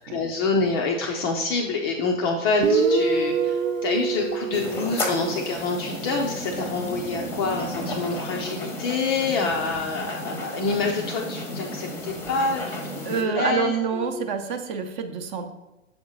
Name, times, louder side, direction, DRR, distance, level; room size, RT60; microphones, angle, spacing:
voice 1, 0.1-14.3, left 4 dB, 20° left, 1 dB, 0.3 m, -27 dB
Guitar, 2.6-6.1, right 4 dB, 85° right, 0.7 m, -25 dB
sound 1, 4.5-13.2, left 1 dB, 5° left, 0.8 m, -33 dB
voice 2, 13.0-15.5, right 6 dB, 40° right, 7 dB, 0.7 m, -27 dB
7.0 x 3.6 x 4.0 m, 1.0 s
figure-of-eight pair, 110°, 38 cm